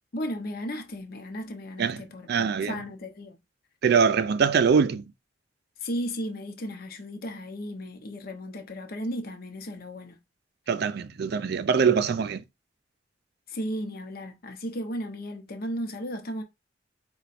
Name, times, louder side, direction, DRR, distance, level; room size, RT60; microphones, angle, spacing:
voice 1, 0.1-3.4 5.8-10.2 13.5-16.4, equal, 55° left, 0.8 m, -35 dB
voice 2, 2.3-2.7 3.8-5.0 10.7-12.4, right 6 dB, 60° right, 0.4 m, -23 dB
4.2 x 2.3 x 4.1 m
head